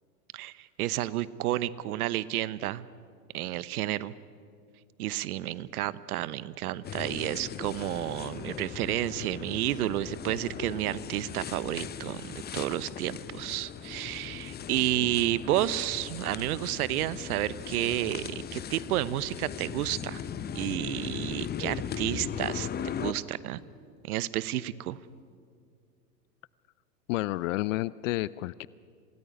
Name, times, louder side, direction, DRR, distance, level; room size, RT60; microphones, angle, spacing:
voice 1, 0.3-2.9 3.3-4.1 5.0-20.2 20.5-22.7 23.0-23.6 24.0-25.0, right 14 dB, 60° right, 18 dB, 1.0 m, -31 dB
sound 1, 6.8-23.1, left 8 dB, 20° left, 0.9 m, -38 dB
voice 2, 27.1-28.7, left 18 dB, 50° left, 20 dB, 0.6 m, -30 dB
26.5 x 18.5 x 9.8 m, 2.2 s
hypercardioid pair, 100°, 49 cm